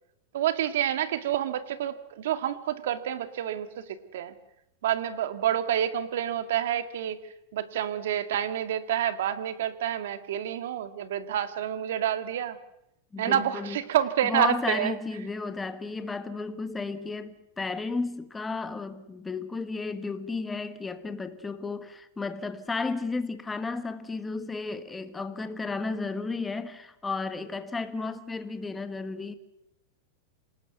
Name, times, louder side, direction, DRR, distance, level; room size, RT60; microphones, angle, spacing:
voice 1, 0.3-4.3 4.8-7.2 7.5-12.6 13.2-14.9, right 10 dB, 75° right, 11 dB, 2.2 m, -28 dB
voice 2, 13.1-13.8 14.2-29.3, left 3 dB, 10° left, 10 dB, 1.6 m, -33 dB
27.5 x 19.5 x 8.0 m, 0.83 s
supercardioid pair, 150°, 0 cm